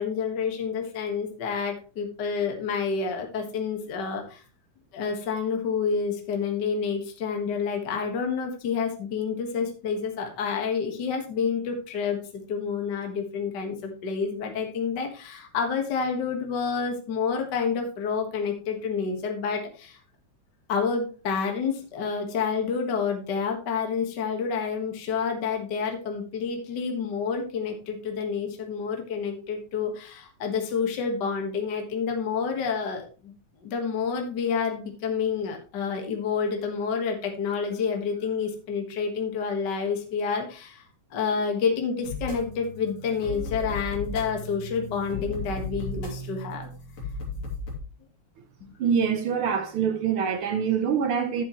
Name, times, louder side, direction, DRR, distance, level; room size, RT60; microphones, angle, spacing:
voice 1, 0.0-4.4 4.9-12.2 12.5-20.0 20.7-33.3 33.6-40.9 41.1-46.7, left 5 dB, 40° left, 1.9 m, -29 dB
sound 1, 42.0-47.8, left 2 dB, 60° left, 3.9 m, -35 dB
voice 2, 48.8-51.4, right 7 dB, 75° right, 1.2 m, -25 dB
12.0 x 7.6 x 3.1 m
omnidirectional pair, 3.4 m